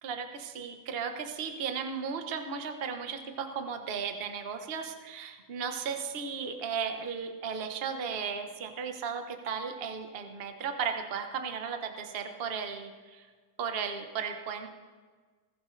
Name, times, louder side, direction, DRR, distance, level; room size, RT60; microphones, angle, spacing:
voice 1, 0.0-13.3 13.6-14.7, right 6 dB, 40° right, 5 dB, 1.0 m, -35 dB
21.0 x 15.0 x 3.2 m, 1.5 s
omnidirectional pair, 2.0 m